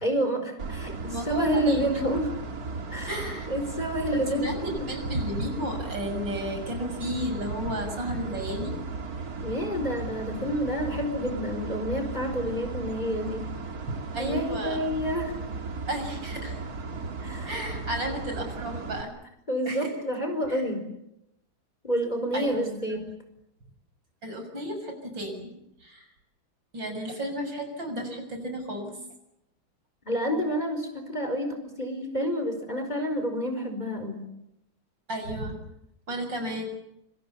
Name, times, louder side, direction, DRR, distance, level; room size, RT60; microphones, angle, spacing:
voice 1, 0.0-2.3 2.9-3.1 3.5-4.9 9.4-13.5 14.2-15.3 17.2-17.5 19.5-20.8 21.8-23.1 30.0-34.2, equal, 20° left, 6 dB, 4.9 m, -29 dB
sound 1, 0.6-19.0, right 4 dB, 45° right, 2.4 m, -36 dB
voice 2, 1.0-1.8 3.1-3.5 4.3-8.8 13.9-14.8 15.9-16.6 17.5-19.1 19.7-19.9 20.5-20.6 22.3-22.6 22.9-23.0 24.2-25.5 25.8-26.1 26.7-29.0 35.1-35.6 36.1-36.6, equal, 65° right, 5 dB, 7.3 m, -33 dB
27.0 x 26.5 x 7.0 m, 0.83 s
omnidirectional pair, 2.2 m